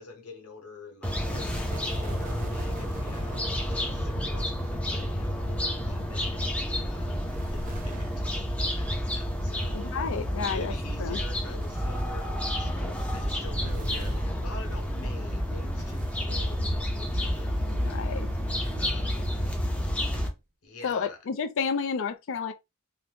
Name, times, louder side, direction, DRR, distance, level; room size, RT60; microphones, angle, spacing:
voice 1, 0.0-6.4 6.7-9.8 10.5-17.8 18.8-19.4 20.6-21.2, left 3 dB, 80° left, 0.9 m, -47 dB
sound 1, 1.0-20.3, equal, 5° left, 0.6 m, -30 dB
sound 2, 1.2-15.4 15.8-19.7 20.2-20.3, right 1 dB, 35° right, 0.6 m, -43 dB
voice 2, 9.7-10.7 11.0-11.2 17.6-18.3 20.8-22.5, left 6 dB, 60° left, 0.4 m, -31 dB
2.7 x 2.0 x 3.2 m
head